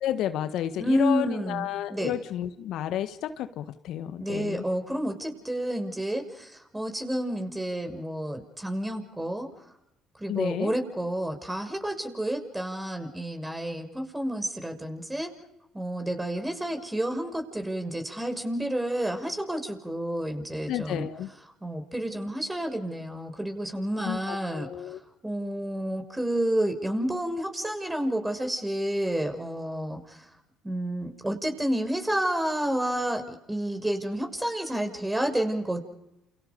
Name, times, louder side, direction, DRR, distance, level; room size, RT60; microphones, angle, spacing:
voice 1, 0.0-4.7 10.3-10.7 20.7-21.3 24.0-25.0, left 11 dB, 65° left, 10 dB, 1.5 m, -31 dB
voice 2, 0.8-2.2 4.1-9.5 10.2-15.3 15.7-21.1 21.6-24.9 25.2-30.2 30.6-35.8, right 1 dB, 15° right, 5 dB, 6.4 m, -30 dB
30.0 x 28.5 x 5.4 m, 0.89 s
hypercardioid pair, 55°, 0 cm